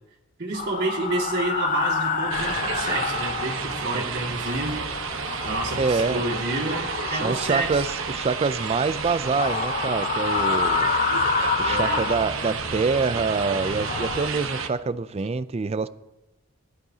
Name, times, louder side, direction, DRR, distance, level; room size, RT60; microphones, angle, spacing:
voice 1, 0.4-4.8 5.4-7.8 11.6-12.1, right 2 dB, 55° right, 2.2 m, -29 dB
sound 1, 0.5-4.0 4.3-8.3 9.2-12.8 13.3-14.3, left 5 dB, 40° left, 0.8 m, -28 dB
sound 2, 2.3-14.7, right 5 dB, 70° right, 1.1 m, -31 dB
voice 2, 5.8-6.3 7.2-10.9 11.6-15.9, right 4 dB, 30° right, 0.4 m, -26 dB
21.0 x 12.0 x 2.8 m
head